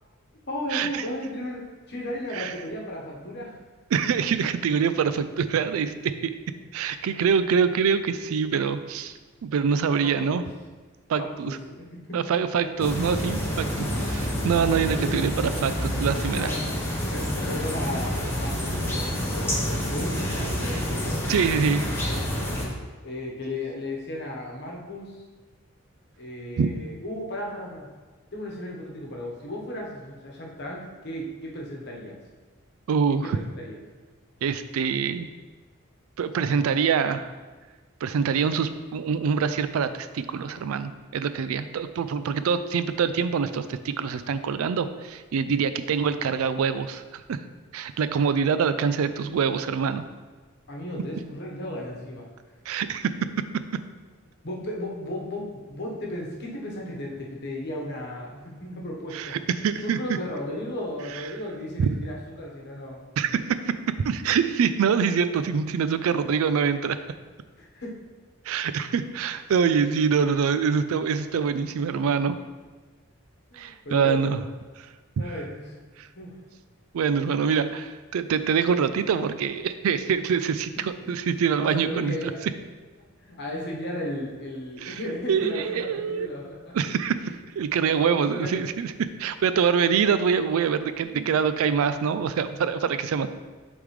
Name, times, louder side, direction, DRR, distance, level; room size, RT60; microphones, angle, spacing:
voice 1, 0.5-3.6 10.0-10.5 11.2-12.2 12.6-12.7 14.7-15.2 16.3-16.7 17.0-21.2 23.0-25.2 26.2-27.9 28.3-32.2 33.1-33.8 49.0-49.4 50.7-52.3 54.4-59.4 59.8-63.0 67.6-67.9 73.5-74.2 75.2-75.8 76.1-76.3 80.7-80.8 81.6-82.4 83.0-86.8 87.9-88.6 91.1-91.2, left 1 dB, 50° left, -2 dB, 1.1 m, -35 dB
voice 2, 3.9-6.3 6.7-9.1 9.4-10.4 11.1-11.6 12.1-16.5 21.3-21.8 26.6-26.7 32.9-33.4 34.4-35.3 36.2-37.3 38.0-47.4 47.7-50.0 52.7-53.1 59.1-60.2 61.1-61.2 61.8-61.9 63.2-63.4 63.7-63.8 64.0-67.0 68.5-72.4 73.5-74.4 74.8-74.9 76.0-76.1 76.9-82.3 84.8-85.0 85.3-86.3 86.7-88.9 89.2-93.3, right 6 dB, 80° right, 12 dB, 0.3 m, -25 dB
sound 1, 12.8-22.6, equal, 10° left, 0.9 m, -28 dB
8.3 x 3.6 x 3.2 m, 1.3 s
head